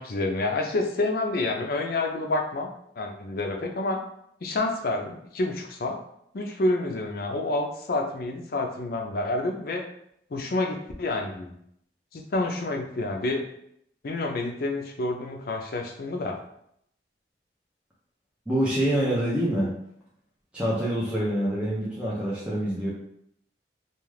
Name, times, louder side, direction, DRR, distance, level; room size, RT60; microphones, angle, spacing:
voice 1, 0.0-2.7 3.0-4.0 4.4-6.0 6.3-9.8 10.3-11.6 12.1-13.4 14.0-16.4, left 2 dB, 55° left, 2 dB, 0.4 m, -28 dB
voice 2, 18.5-19.7 20.5-22.9, right 1 dB, 5° right, -8 dB, 0.5 m, -26 dB
2.3 x 2.3 x 3.2 m, 0.73 s
head